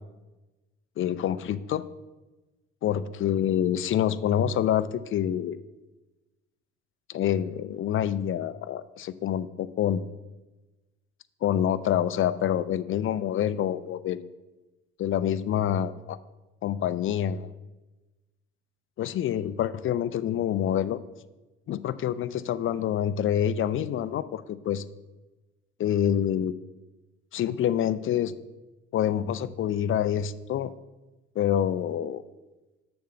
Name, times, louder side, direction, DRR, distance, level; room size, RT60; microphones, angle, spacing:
voice 1, 1.0-1.8 2.8-5.6 7.1-10.0 11.4-14.3 15.0-16.2 16.6-17.5 19.0-21.0 21.7-24.8 25.8-26.5 27.3-28.3 28.9-30.7 31.4-32.2, left 10 dB, 40° left, 15 dB, 0.5 m, -27 dB
6.7 x 4.4 x 6.7 m, 1.1 s
hypercardioid pair, 70°, 33 cm